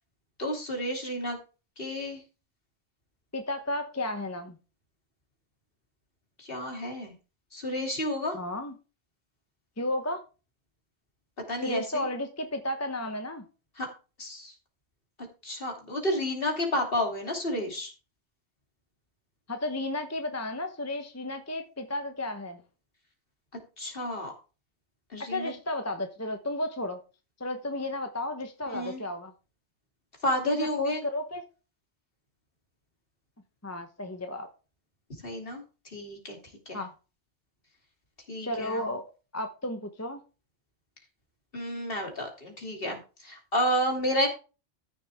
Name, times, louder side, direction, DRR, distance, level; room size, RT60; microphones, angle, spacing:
voice 1, 0.4-1.4 1.8-2.2 6.4-7.1 7.5-8.4 11.5-12.1 13.8-13.9 14.2-14.5 15.2-17.9 23.8-24.3 25.1-25.5 28.7-29.0 30.2-31.0 35.2-36.4 36.7-36.9 38.3-38.9 41.5-44.3, equal, 50° left, 2 dB, 3.0 m, -31 dB
voice 2, 3.3-4.6 8.3-8.7 9.8-10.2 11.6-13.4 19.5-22.6 25.2-27.0 27.4-29.3 30.5-31.4 33.6-34.5 36.7-36.9 38.4-39.0 39.3-40.2, left 1 dB, 15° left, 6 dB, 0.9 m, -33 dB
14.0 x 6.8 x 3.5 m, 0.33 s
omnidirectional pair, 1.2 m